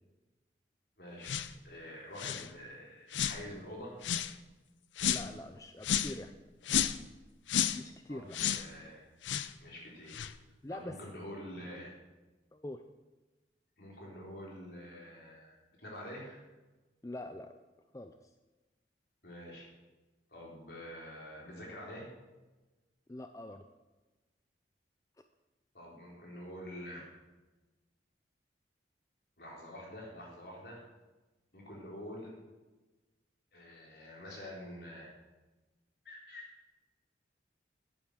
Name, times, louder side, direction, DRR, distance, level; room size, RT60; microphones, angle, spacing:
voice 1, 1.0-1.4 1.6-4.0 8.1-9.1 9.6-10.2 10.7-12.0 13.8-16.4 19.2-19.7 20.3-22.1 25.7-27.1 29.4-30.9 31.5-32.3 33.5-35.1 36.0-36.5, equal, 60° left, -3 dB, 4.0 m, -47 dB
sound 1, 1.2-1.5 2.2-2.5 3.1-3.4 4.0-4.3 5.0-5.3 5.8-6.2 6.6-7.0 7.5-7.8 8.3-8.7 9.2-9.5 10.1-10.3, left 9 dB, 90° left, 0.6 m, -32 dB
voice 2, 5.0-6.3 7.7-8.4 10.6-11.0 12.5-12.8 17.0-17.5 17.9-18.2 23.1-23.6, left 1 dB, 15° left, 7 dB, 0.4 m, -44 dB
11.5 x 8.7 x 6.6 m, 1.2 s
head